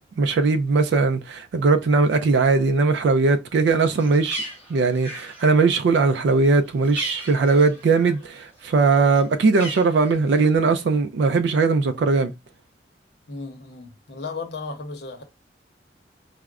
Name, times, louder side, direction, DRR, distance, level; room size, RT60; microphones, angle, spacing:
voice 1, 0.2-4.4 4.7-12.3, right 4 dB, 80° right, 0.3 m, -19 dB
Bird, 3.7-8.3 8.6-10.6, equal, 10° right, 1.4 m, -38 dB
voice 2, 13.3-15.2, left 4 dB, 75° left, 0.7 m, -35 dB
4.6 x 2.1 x 2.3 m
head